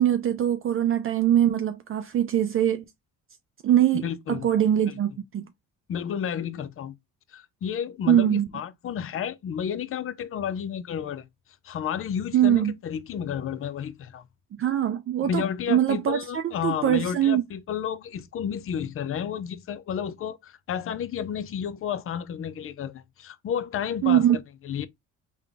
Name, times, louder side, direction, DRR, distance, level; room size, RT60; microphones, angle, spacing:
voice 1, 0.0-2.8 3.6-5.5 8.1-8.5 12.3-12.7 14.6-17.4 24.0-24.4, right 11 dB, 45° right, 0.4 m, -22 dB
voice 2, 3.9-4.5 4.9-5.0 5.9-7.0 7.3-11.3 11.6-14.3 15.2-24.2 24.6-24.9, left 8 dB, 45° left, 0.5 m, -31 dB
3.7 x 2.3 x 3.4 m
cardioid pair, 90°, 30 cm